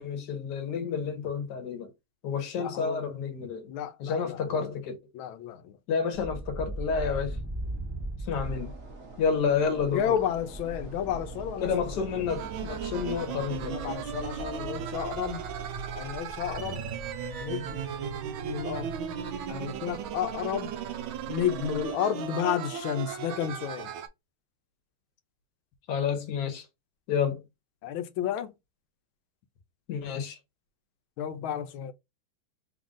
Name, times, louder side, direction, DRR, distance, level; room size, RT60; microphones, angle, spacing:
voice 1, 0.0-1.9 2.2-3.7 4.0-5.0 5.9-7.4 8.3-8.7 9.2-10.2 11.6-13.8 25.9-26.6 27.1-27.4 29.9-30.4, left 6 dB, 60° left, 1.5 m, -30 dB
voice 2, 2.6-3.1 3.7-4.7 5.1-5.8 9.9-12.0 13.3-15.5 15.9-16.9 17.4-17.8 18.4-19.0 19.5-20.7 21.3-23.9 27.8-28.5 31.2-31.9, left 9 dB, 85° left, 1.4 m, -32 dB
sound 1, 6.1-21.9, right 2 dB, 20° right, 0.7 m, -41 dB
sound 2, 8.3-14.9, right 4 dB, 55° right, 0.9 m, -49 dB
sound 3, 12.3-24.1, right 8 dB, 80° right, 1.5 m, -36 dB
3.9 x 2.5 x 3.7 m
omnidirectional pair, 2.2 m